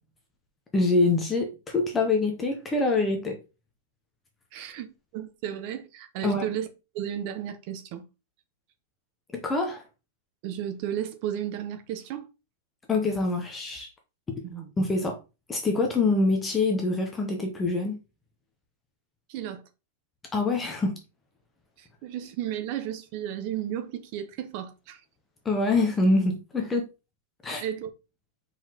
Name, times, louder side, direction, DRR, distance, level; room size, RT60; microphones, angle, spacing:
voice 1, 0.7-3.4 6.2-6.4 9.3-9.8 12.9-13.9 14.8-15.2 15.5-18.0 20.3-21.0 25.5-26.8 27.4-27.6, left 3 dB, 10° left, 0.6 m, -25 dB
voice 2, 4.5-6.7 6.9-8.0 10.4-12.3 14.4-14.7 19.3-19.6 21.8-25.0 27.5-27.9, right 10 dB, 35° right, 0.7 m, -34 dB
4.6 x 3.9 x 2.8 m
supercardioid pair, 175°, 0 cm